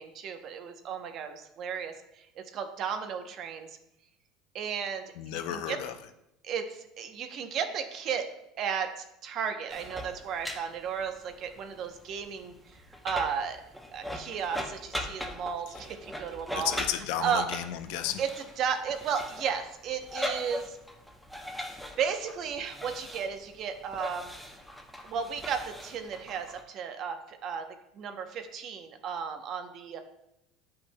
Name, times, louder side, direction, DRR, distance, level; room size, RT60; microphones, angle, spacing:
voice 1, 0.0-1.9 2.4-3.7 4.5-5.0 5.3-5.8 6.4-8.2 8.6-12.5 13.0-13.6 13.9-16.7 17.2-17.5 18.2-18.3 18.6-20.8 22.0-24.3 25.0-27.6 28.0-30.0, right 7 dB, 50° right, 7 dB, 0.7 m, -34 dB
voice 2, 5.2-6.0 16.6-18.2, left 11 dB, 75° left, 8 dB, 0.6 m, -33 dB
sound 1, 9.7-26.6, left 1 dB, ahead, 0.8 m, -40 dB
8.4 x 5.7 x 2.2 m, 0.84 s
supercardioid pair, 110°, 0 cm